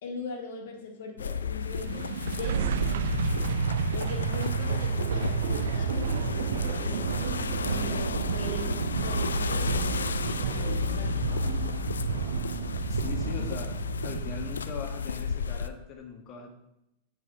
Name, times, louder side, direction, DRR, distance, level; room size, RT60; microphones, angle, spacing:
voice 1, 0.0-3.5 3.9-11.3, left 3 dB, 55° left, 1 dB, 1.9 m, -40 dB
sound 1, 1.2-15.7, left 4 dB, 70° left, 0.4 m, -32 dB
sound 2, 1.7-14.8, right 9 dB, 60° right, 0.4 m, -31 dB
voice 2, 12.9-13.7 14.0-16.5, left 6 dB, 35° left, 3 dB, 1.6 m, -40 dB
8.0 x 5.6 x 5.4 m, 0.87 s
figure-of-eight pair, 90°, 0 cm